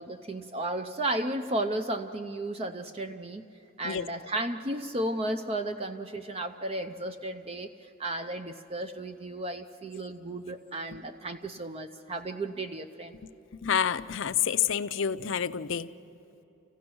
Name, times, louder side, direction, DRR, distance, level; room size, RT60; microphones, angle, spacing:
voice 1, 0.0-3.5 3.8-13.2, right 1 dB, 30° right, 8 dB, 0.5 m, -34 dB
voice 2, 13.2-15.9, left 8 dB, 65° left, 11 dB, 0.5 m, -29 dB
29.0 x 15.5 x 6.2 m, 3.0 s
head